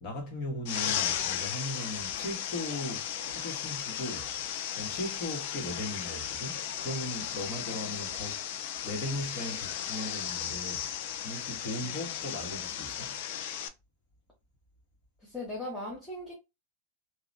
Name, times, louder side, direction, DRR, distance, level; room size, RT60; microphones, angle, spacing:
voice 1, 0.0-4.3 4.8-8.4 8.8-10.9 11.2-13.1, left 1 dB, 40° left, 1.1 m, -38 dB
sound 1, 0.7-13.7, left 9 dB, 55° left, 0.4 m, -35 dB
voice 2, 7.5-8.0 11.8-12.0 15.2-16.3, left 2 dB, 5° left, 0.8 m, -40 dB
2.8 x 2.0 x 2.5 m
supercardioid pair, 155°, 0 cm